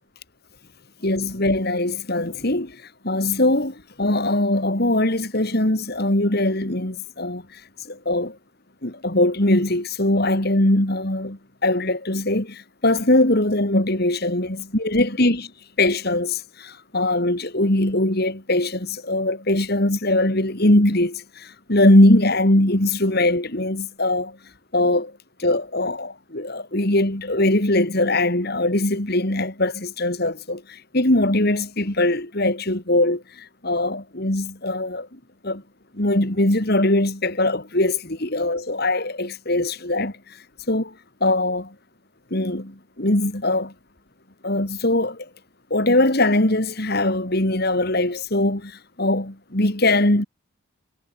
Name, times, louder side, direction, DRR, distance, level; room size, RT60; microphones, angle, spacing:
voice 1, 1.0-2.8 3.0-8.4 8.8-15.5 15.8-24.4 24.7-25.1 25.4-35.6 35.9-40.4 40.7-40.9 41.2-41.7 42.3-43.7 44.4-45.3 45.7-50.2, left 1 dB, 45° left, 2.6 m, -21 dB
head